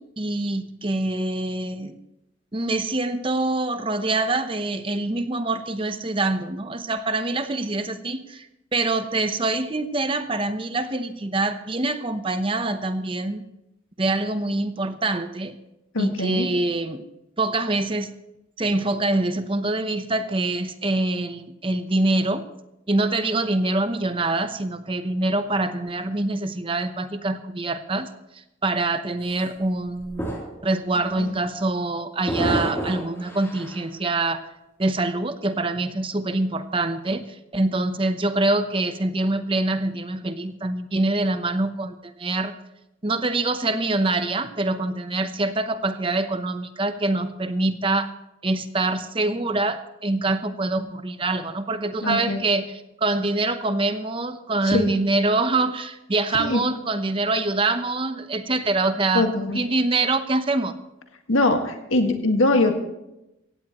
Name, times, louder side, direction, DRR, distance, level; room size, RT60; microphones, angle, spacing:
voice 1, 0.0-1.9 2.5-8.5 8.7-13.4 14.0-15.6 16.0-17.1 17.4-18.1 18.6-22.4 22.9-28.1 28.6-30.3 30.6-34.4 34.8-37.2 37.5-42.5 43.0-48.1 48.4-52.7 53.0-59.3 59.5-60.8, right 2 dB, 25° right, 10 dB, 0.8 m, -25 dB
voice 2, 15.9-16.5 31.0-31.4 52.0-52.5 54.6-55.1 56.4-56.6 59.1-59.6 61.3-62.7, left 2 dB, 90° left, 5 dB, 1.8 m, -22 dB
sound 1, 29.2-29.4 30.0-30.7 31.0-31.3 32.3-33.9, right 1 dB, 15° left, 3.2 m, -29 dB
16.5 x 16.0 x 3.0 m, 0.88 s
head